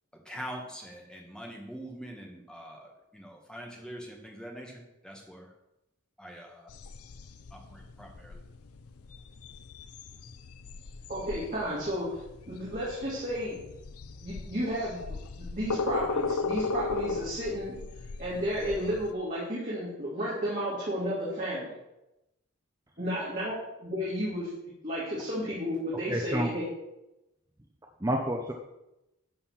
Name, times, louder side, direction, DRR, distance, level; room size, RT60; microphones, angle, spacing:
voice 1, 0.2-5.5 6.2-6.7 7.5-8.4, equal, 5° left, 0 dB, 1.6 m, -44 dB
sound 1, 6.7-19.1, left 4 dB, 85° left, 0.6 m, -37 dB
voice 2, 11.1-13.6 14.2-15.0 15.4-17.8 18.2-21.7 23.0-24.5 24.8-26.7, equal, 35° right, -8 dB, 2.6 m, -32 dB
voice 3, 26.1-26.5 28.0-28.5, right 1 dB, 15° right, 2 dB, 0.7 m, -29 dB
11.5 x 4.3 x 7.3 m, 0.93 s
head